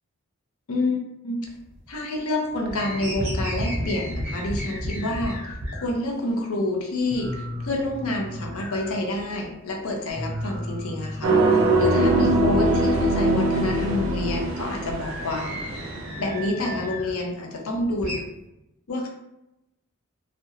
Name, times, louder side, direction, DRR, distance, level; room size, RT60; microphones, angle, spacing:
voice 1, 0.7-1.5 1.9-15.6 16.2-18.2 18.9-19.1, left 2 dB, 80° left, 1 dB, 0.5 m, -28 dB
sound 1, 1.5-2.2 2.5-5.9 6.3-6.4 6.8-6.9 7.1-9.5 9.8-12.4 12.8-17.2 17.6-18.2, equal, 30° right, 0.7 m, -34 dB
sound 2, 11.2-16.1, right 2 dB, 70° right, 0.4 m, -22 dB
2.3 x 2.1 x 3.0 m, 0.90 s
head